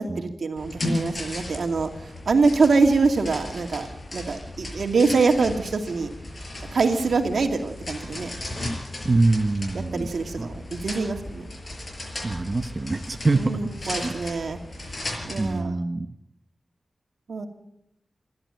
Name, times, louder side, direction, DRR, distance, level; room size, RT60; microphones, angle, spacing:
voice 1, 0.0-3.9 4.1-6.1 6.7-8.8 9.7-11.5 13.4-14.9 15.2-15.7 17.3-17.5, right 4 dB, 80° right, 4 dB, 2.5 m, -24 dB
sound 1, 0.6-15.6, left 1 dB, 40° left, 5.8 m, -35 dB
voice 2, 9.0-10.1 10.4-10.5 12.2-14.1 15.4-16.1, right 2 dB, 35° right, 7 dB, 0.8 m, -24 dB
27.0 x 12.0 x 9.1 m, 0.82 s
wide cardioid pair, 125°, 0 cm